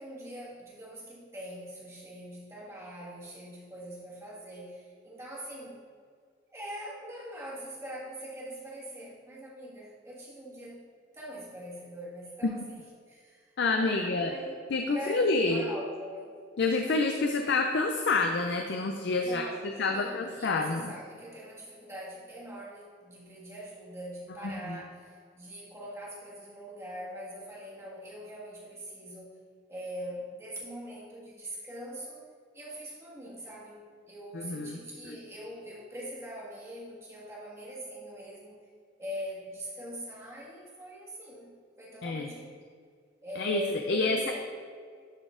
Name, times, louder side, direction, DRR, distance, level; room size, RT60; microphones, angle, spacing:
voice 1, 0.0-5.8 6.5-10.9 11.1-14.6 14.9-16.3 19.2-29.4 29.7-32.2 32.5-38.6 39.0-42.6 43.2-44.4, equal, 15° right, -6 dB, 1.6 m, -42 dB
voice 2, 13.6-14.3 14.7-15.6 16.6-20.9 24.4-24.8 34.3-34.8 35.0-35.2 42.0-42.3 43.4-43.6 43.9-44.4, left 3 dB, 60° left, 4 dB, 0.5 m, -28 dB
11.5 x 4.1 x 3.7 m, 2.1 s
head